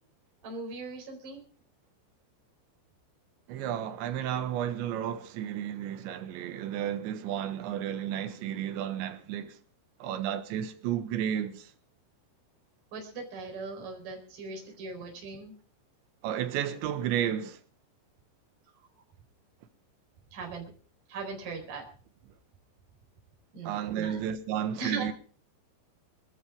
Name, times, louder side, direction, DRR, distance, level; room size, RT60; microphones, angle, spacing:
voice 1, 0.4-1.4 12.9-15.5 20.3-20.7 21.1-21.8 23.5-24.2 24.7-25.1, right 4 dB, 45° right, 5.6 m, -38 dB
voice 2, 3.5-9.6 10.0-11.7 16.2-17.6 23.6-25.1, right 10 dB, 80° right, 3.7 m, -32 dB
25.5 x 13.5 x 3.6 m
omnidirectional pair, 5.3 m